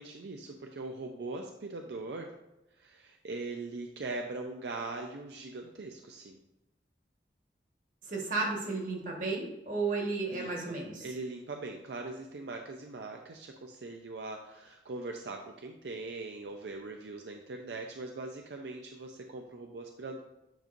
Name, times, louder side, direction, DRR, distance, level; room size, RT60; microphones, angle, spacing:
voice 1, 0.0-2.3 2.7-6.4 10.3-10.7 11.0-20.2, right 3 dB, 80° right, 3 dB, 0.5 m, -41 dB
voice 2, 8.0-11.0, right 3 dB, 45° right, -1 dB, 1.5 m, -33 dB
9.2 x 5.1 x 2.6 m, 0.93 s
head